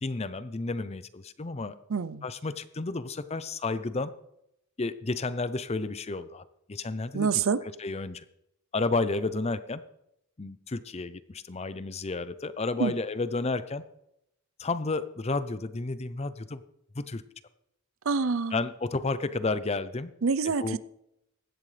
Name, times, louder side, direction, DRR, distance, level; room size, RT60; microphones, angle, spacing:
voice 1, 0.0-1.7 2.2-4.1 4.8-7.4 7.8-8.2 8.7-9.8 10.4-13.8 14.6-16.6 17.0-17.2 18.5-20.1 20.6-20.8, left 3 dB, 30° left, 0.6 m, -31 dB
voice 2, 1.9-2.2 7.1-7.6 12.8-12.9 18.1-18.6 20.2-20.8, right 5 dB, 70° right, 0.5 m, -26 dB
16.0 x 11.0 x 3.3 m
head